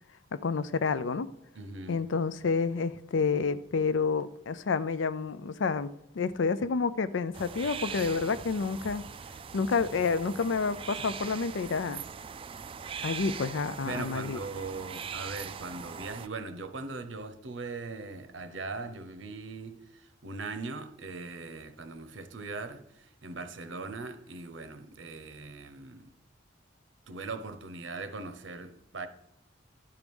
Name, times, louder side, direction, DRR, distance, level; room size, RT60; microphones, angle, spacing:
voice 1, 0.3-1.3 1.9-5.9 6.1-9.0 9.5-12.0 13.0-14.4, left 5 dB, 80° left, 0.5 m, -29 dB
voice 2, 1.5-2.0 13.8-26.1 27.1-29.1, right 3 dB, 80° right, 0.8 m, -40 dB
sound 1, 7.3-16.3, right 6 dB, 30° right, 0.3 m, -41 dB
11.5 x 4.8 x 5.3 m
head